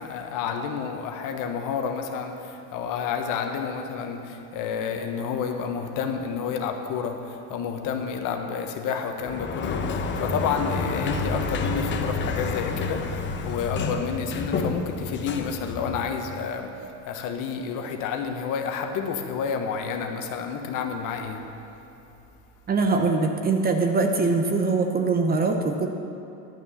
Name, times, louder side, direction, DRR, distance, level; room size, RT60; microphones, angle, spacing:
voice 1, 0.0-21.5, left 6 dB, 50° left, 5 dB, 1.2 m, -30 dB
Sliding door, 9.2-16.4, left 3 dB, 30° left, 0.9 m, -29 dB
voice 2, 22.7-25.9, right 3 dB, 20° right, 4 dB, 0.9 m, -22 dB
11.5 x 7.0 x 7.1 m, 2.7 s
supercardioid pair, 115°, 40 cm